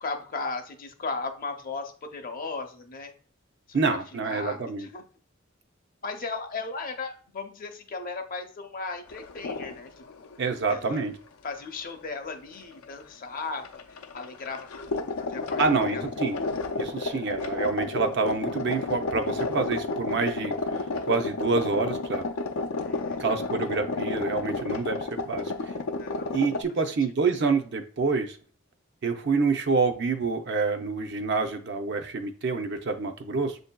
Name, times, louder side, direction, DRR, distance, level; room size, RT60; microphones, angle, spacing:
voice 1, 0.0-3.1 3.7-5.0 6.0-10.3 10.7-11.0 11.4-16.0 16.9-17.2 22.8-23.4 25.9-26.4, left 4 dB, 40° left, 6 dB, 0.6 m, -37 dB
voice 2, 3.7-4.9 10.4-11.1 15.6-16.4 16.8-20.5 21.0-22.3 23.2-25.5 26.3-28.4 29.0-33.6, right 4 dB, 55° right, 6 dB, 0.5 m, -27 dB
sound 1, 9.1-9.8 10.1-10.3 11.7-11.8 12.8-13.0 13.3-26.6, left 3 dB, 90° left, 0.5 m, -31 dB
7.2 x 2.6 x 2.2 m, 0.43 s
head